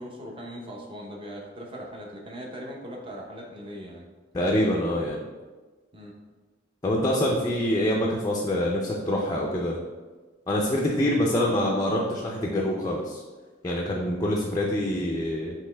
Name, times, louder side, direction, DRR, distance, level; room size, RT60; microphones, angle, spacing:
voice 1, 0.0-4.1 5.9-6.1, equal, 30° right, -1 dB, 0.7 m, -39 dB
voice 2, 4.3-5.2 6.8-9.8 10.5-13.2 13.6-15.5, left 1 dB, 20° left, -3 dB, 0.4 m, -25 dB
5.2 x 3.0 x 3.3 m, 1.3 s
head